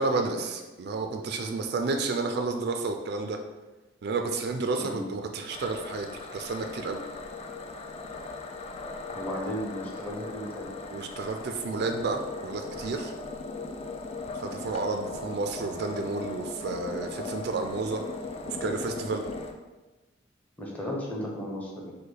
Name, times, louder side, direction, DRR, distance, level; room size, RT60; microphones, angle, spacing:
voice 1, 0.0-3.4 4.0-6.1 6.3-7.0 10.9-13.1 14.4-18.0 18.5-19.2, right 3 dB, 55° right, 5 dB, 0.4 m, -31 dB
sound 1, 5.5-19.5, left 3 dB, 30° left, 0.4 m, -38 dB
voice 2, 9.1-10.7 20.6-21.9, equal, 10° left, -3 dB, 0.8 m, -35 dB
5.3 x 2.1 x 3.9 m, 1.1 s
head